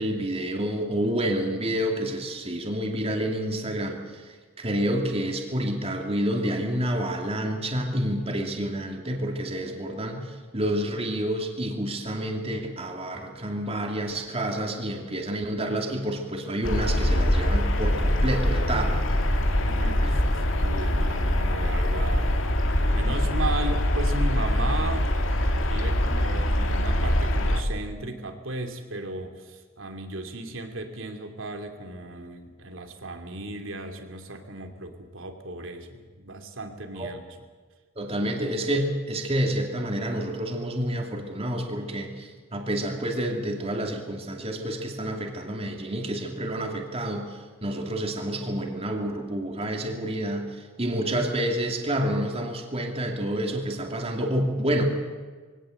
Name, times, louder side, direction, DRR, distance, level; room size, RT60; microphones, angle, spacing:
voice 1, 0.0-19.0 20.0-20.2 36.9-37.1 38.0-54.8, right 1 dB, 30° right, 2 dB, 2.6 m, -29 dB
sound 1, 16.6-27.6, left 1 dB, 80° left, 2.2 m, -23 dB
voice 2, 19.6-20.2 20.6-22.3 22.9-25.1 25.6-37.4, right 2 dB, 85° right, 5 dB, 2.7 m, -35 dB
22.0 x 17.5 x 7.8 m, 1.5 s
head